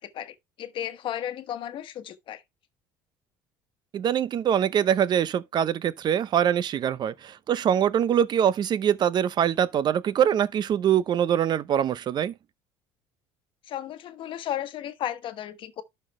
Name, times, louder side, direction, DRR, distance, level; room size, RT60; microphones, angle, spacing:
voice 1, 0.0-2.4 13.7-15.8, left 11 dB, 55° left, 1.2 m, -34 dB
voice 2, 3.9-12.3, right 9 dB, 45° right, 0.6 m, -23 dB
11.5 x 4.3 x 3.1 m
supercardioid pair, 90°, 10 cm